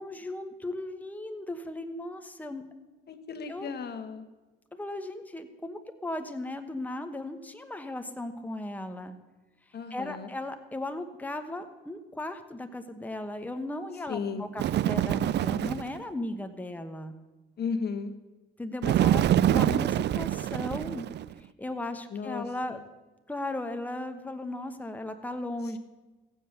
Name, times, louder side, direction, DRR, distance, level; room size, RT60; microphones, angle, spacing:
voice 1, 0.0-2.6 3.5-3.7 4.7-9.2 9.9-17.1 18.6-21.1 21.4-22.8 23.3-25.8, left 1 dB, 10° left, 7 dB, 1.1 m, -36 dB
voice 2, 3.1-4.3 9.7-10.3 14.1-14.5 17.6-18.1 22.1-22.8, left 5 dB, 55° left, 8 dB, 1.5 m, -35 dB
Bird, 14.6-16.0 18.8-21.3, right 12 dB, 60° right, 0.4 m, -25 dB
16.5 x 7.8 x 6.7 m, 1.2 s
cardioid pair, 90°, 20 cm